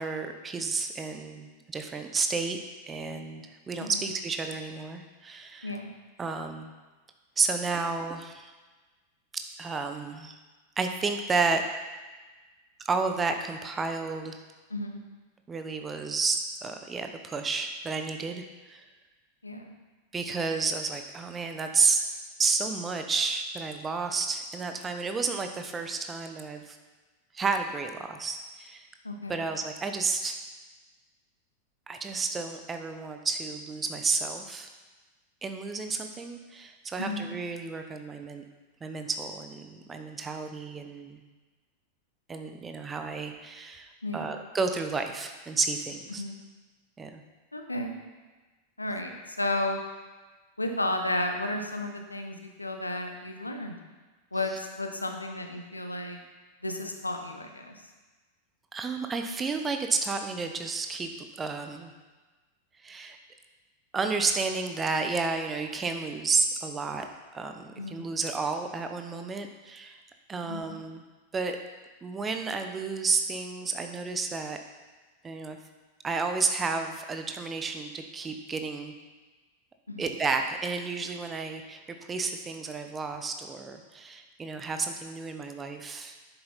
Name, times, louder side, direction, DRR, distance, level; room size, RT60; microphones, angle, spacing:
voice 1, 0.0-2.6 2.9-5.7 6.2-6.7 7.4-8.5 9.3-10.4 10.8-11.6 12.8-14.4 15.5-18.8 20.1-22.0 22.4-26.8 27.3-28.9 29.3-30.4 31.9-34.7 35.4-38.4 38.8-41.2 42.3-46.2 47.0-47.2 58.7-61.9 62.8-63.2 63.9-70.0 70.3-71.1 71.3-71.6 72.0-74.6 75.2-75.6 76.0-78.9 80.0-86.1, right 4 dB, 20° right, 6 dB, 0.9 m, -31 dB
voice 2, 14.7-15.0 19.4-19.7 29.0-29.5 37.0-37.3 44.0-44.3 46.1-46.3 47.5-47.9 48.8-49.8 50.6-53.8 54.3-56.2 56.6-57.7 67.8-68.1 70.4-70.8 79.9-80.0, left 1 dB, 85° left, 4 dB, 1.0 m, -33 dB
10.0 x 7.7 x 4.3 m, 1.3 s
figure-of-eight pair, 90°, 0 cm